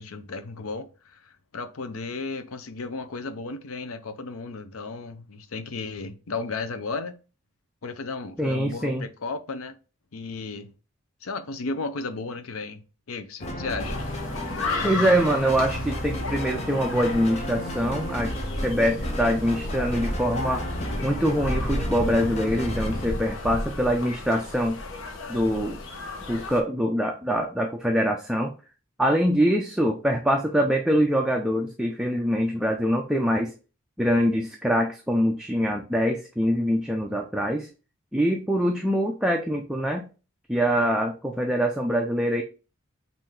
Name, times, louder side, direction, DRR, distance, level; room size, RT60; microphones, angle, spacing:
voice 1, 0.0-7.2 7.8-9.8 10.1-10.7 11.2-14.0, left 3 dB, 85° left, 0.6 m, -34 dB
voice 2, 8.4-9.0 14.8-20.6 21.0-24.8 25.3-25.8 26.3-28.5 29.0-33.5 34.0-37.7 38.1-40.0 40.5-42.4, equal, 5° right, 0.4 m, -24 dB
sound 1, 13.4-23.1, left 1 dB, 30° left, 0.7 m, -33 dB
sound 2, 13.8-26.6, left 2 dB, 70° left, 1.0 m, -33 dB
5.5 x 2.6 x 3.2 m
head